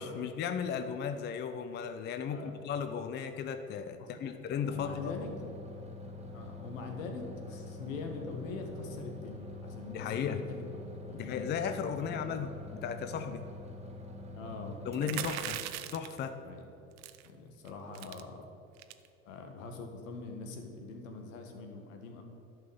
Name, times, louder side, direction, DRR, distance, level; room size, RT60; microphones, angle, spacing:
voice 1, 0.0-5.1 9.9-10.4 11.1-13.5 14.9-15.6 15.9-16.4, left 7 dB, 25° left, 9 dB, 0.5 m, -35 dB
voice 2, 2.3-2.6 4.0-4.3 4.7-5.3 6.3-10.8 11.1-11.5 11.9-12.5 14.3-14.9 16.5-16.6 17.2-18.4 19.3-22.2, left 4 dB, 70° left, 4 dB, 1.7 m, -43 dB
sound 1, 4.6-17.2, left 1 dB, 15° right, 1.5 m, -46 dB
sound 2, 15.0-16.2 17.0-17.3 17.6-17.7 17.9-18.2 18.8-19.1, right 13 dB, 40° right, 0.6 m, -39 dB
11.0 x 5.6 x 7.1 m, 2.8 s
hypercardioid pair, 80°, 41 cm